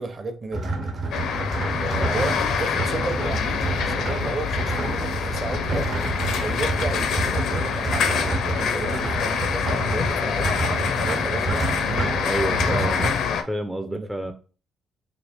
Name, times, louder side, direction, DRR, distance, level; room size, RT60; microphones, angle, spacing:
voice 1, 0.0-1.3 1.7-5.9 6.3-12.8 13.8-14.1, right 3 dB, 35° right, 0.8 m, -34 dB
sound 1, 0.5-13.1, right 3 dB, 55° right, 1.1 m, -29 dB
sound 2, 1.1-13.4, left 7 dB, 75° left, 0.5 m, -26 dB
voice 2, 12.2-13.1 13.4-14.3, right 1 dB, 5° right, 0.4 m, -29 dB
3.1 x 2.5 x 4.3 m
cardioid pair, 90°, 0 cm